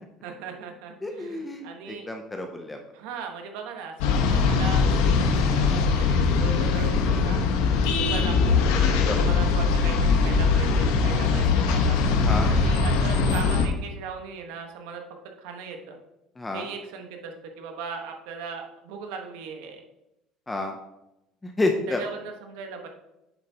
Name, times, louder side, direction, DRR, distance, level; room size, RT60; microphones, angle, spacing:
voice 1, 0.2-2.1 2.9-4.8 5.3-7.4 7.9-8.3 8.6-8.7 9.1-12.0 12.5-15.0 15.4-16.0 16.5-19.8 21.9-22.9, right 5 dB, 80° right, 3 dB, 1.2 m, -38 dB
voice 2, 1.0-2.8 7.7-8.0 9.0-9.3 12.2-12.5 16.4-16.7 20.5-20.7 21.4-22.0, left 2 dB, 10° left, 4 dB, 0.5 m, -30 dB
sound 1, 4.0-13.7, left 4 dB, 85° left, 1.1 m, -21 dB
8.7 x 7.1 x 2.9 m, 0.92 s
cardioid pair, 170°, 0 cm